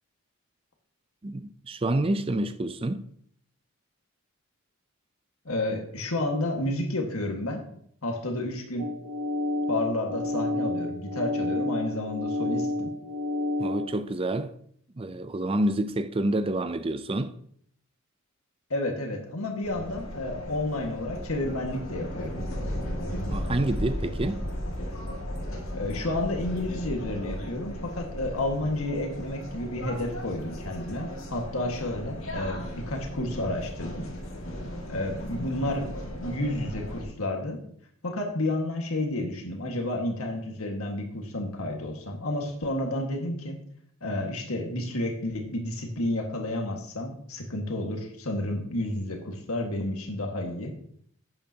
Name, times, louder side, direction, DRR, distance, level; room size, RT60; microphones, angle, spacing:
voice 1, 1.2-3.1 13.6-14.6 15.0-17.4 23.3-24.4, right 1 dB, 25° right, 0.5 m, -28 dB
voice 2, 5.5-7.6 8.0-8.9 9.7-12.9 18.7-22.4 25.7-34.1 34.9-37.6 38.0-43.6 44.0-50.7, left 1 dB, 90° left, 1.8 m, -31 dB
sound 1, 8.8-13.9, left 2 dB, 90° right, 0.9 m, -30 dB
sound 2, 19.6-37.0, equal, 70° left, 2.2 m, -36 dB
11.5 x 8.8 x 2.9 m
head